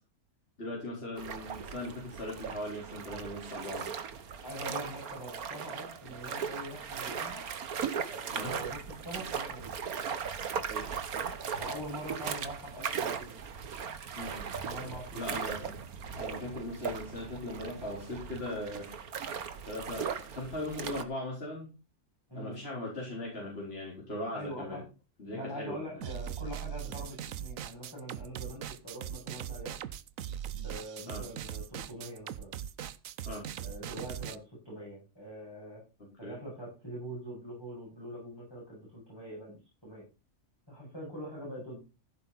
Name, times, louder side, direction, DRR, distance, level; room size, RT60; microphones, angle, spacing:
voice 1, 0.6-3.9 8.3-8.5 10.7-10.9 14.2-14.5 15.1-15.8 16.2-19.1 19.7-21.7 22.4-24.8 25.2-26.1 26.8-26.9 31.1-31.2 33.3-33.5 36.2-36.4, left 1 dB, 45° left, -3 dB, 4.5 m, -39 dB
sound 1, 1.2-21.0, right 7 dB, 85° right, 1.7 m, -38 dB
voice 2, 4.4-7.4 8.0-9.7 11.6-13.4 14.6-15.3 22.3-22.6 24.3-24.8 25.3-29.7 30.5-32.5 33.6-35.8 36.2-40.0 40.7-41.8, equal, 15° left, -5 dB, 7.5 m, -43 dB
sound 2, 26.0-34.4, right 10 dB, 70° right, 1.1 m, -40 dB
15.5 x 8.8 x 4.2 m, 0.30 s
omnidirectional pair, 1.5 m